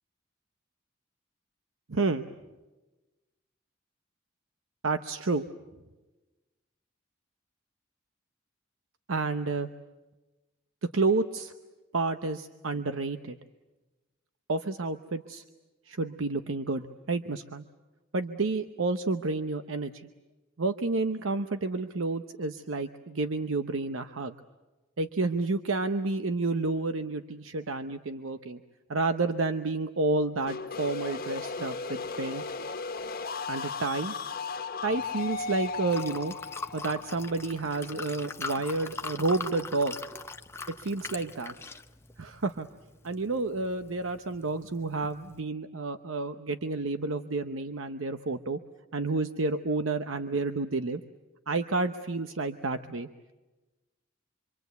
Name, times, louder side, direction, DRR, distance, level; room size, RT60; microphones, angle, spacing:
voice 1, 1.9-2.2 4.8-5.4 9.1-9.7 10.9-11.5 11.9-13.4 14.5-15.4 15.9-17.6 18.1-20.1 20.6-24.4 25.0-28.6 28.9-32.4 33.5-34.1 34.8-36.3 36.7-40.0 40.8-41.5 42.2-42.7 43.0-48.6 48.9-51.0 51.5-53.1, right 3 dB, 90° right, 8 dB, 0.9 m, -30 dB
sound 1, 30.5-38.2, left 4 dB, 50° left, 1.4 m, -36 dB
Liquid, 34.9-45.4, left 3 dB, 15° left, 0.8 m, -42 dB
26.5 x 25.0 x 8.2 m, 1.1 s
head